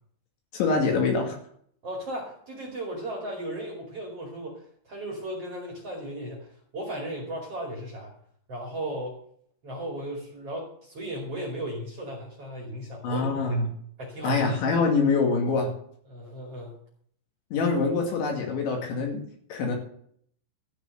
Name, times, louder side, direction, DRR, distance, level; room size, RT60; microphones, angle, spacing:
voice 1, 0.5-1.4 13.0-13.7 14.2-15.7 17.5-19.2 19.5-19.7, left 4 dB, 65° left, 2 dB, 4.3 m, -24 dB
voice 2, 1.8-8.1 8.5-9.1 9.6-13.2 14.0-14.5 16.1-16.7, right 1 dB, 40° right, -1 dB, 2.6 m, -36 dB
14.0 x 6.7 x 7.8 m, 0.63 s
omnidirectional pair, 5.9 m